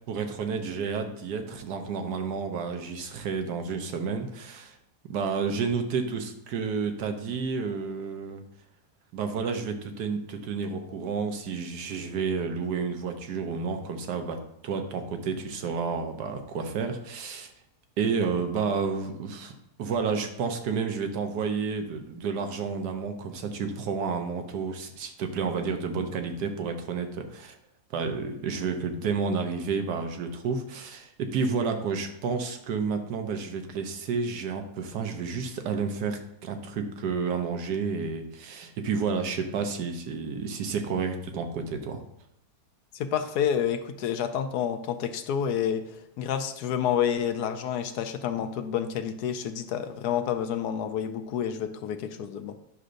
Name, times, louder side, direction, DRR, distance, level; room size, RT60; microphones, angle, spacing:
voice 1, 0.1-4.8 5.0-8.4 9.1-17.5 18.0-19.5 19.8-27.6 27.9-42.0, right 5 dB, 80° right, 6 dB, 1.4 m, -30 dB
voice 2, 42.9-52.6, left 8 dB, 80° left, 8 dB, 1.1 m, -29 dB
9.7 x 6.3 x 2.6 m, 0.78 s
omnidirectional pair, 1.8 m